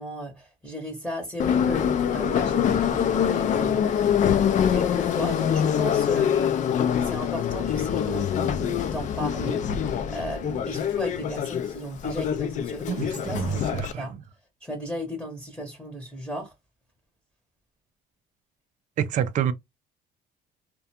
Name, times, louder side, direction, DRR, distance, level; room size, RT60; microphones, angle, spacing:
voice 1, 0.0-14.2 14.6-16.5, equal, ahead, 0.8 m, -35 dB
Subway metro underground, 1.4-13.9, left 8 dB, 50° left, 0.4 m, -25 dB
voice 2, 12.9-14.1 19.0-19.5, right 8 dB, 50° right, 0.4 m, -27 dB
2.4 x 2.2 x 2.7 m
cardioid pair, 110°, 17 cm